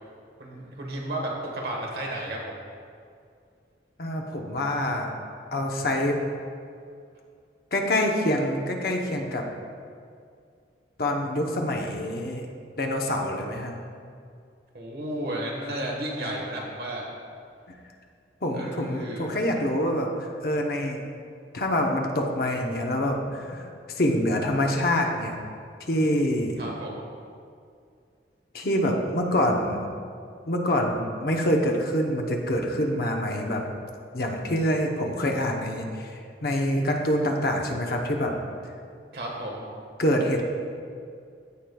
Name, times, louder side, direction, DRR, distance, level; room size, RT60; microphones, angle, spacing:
voice 1, 0.4-2.6 14.7-17.0 18.5-19.3 26.6-27.1 39.1-39.7, right 1 dB, 55° right, -2 dB, 1.3 m, -33 dB
voice 2, 4.0-5.1 5.5-6.2 7.7-9.4 11.0-12.5 12.8-13.7 18.4-21.0 21.5-25.3 25.8-26.6 28.5-29.9 30.5-33.7 34.1-38.4 40.0-40.4, left 1 dB, 55° left, 2 dB, 0.8 m, -26 dB
15.0 x 5.0 x 2.3 m, 2.3 s
head